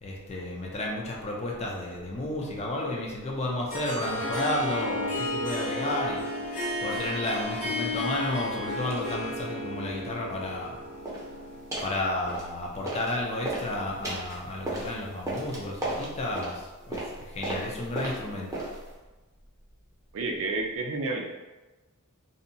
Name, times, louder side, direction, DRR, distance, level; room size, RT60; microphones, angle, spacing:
voice 1, 0.0-10.8 11.8-18.5, left 1 dB, 30° left, -2 dB, 0.4 m, -32 dB
Harp, 3.7-12.1, left 1 dB, 65° left, 1.5 m, -33 dB
sound 1, 11.0-11.3 11.7-12.0 12.3-13.1 13.4-18.9, right 1 dB, 15° right, 0.6 m, -35 dB
voice 2, 20.1-21.3, right 3 dB, 60° right, 2 dB, 0.4 m, -30 dB
2.7 x 2.1 x 2.6 m, 1.1 s
head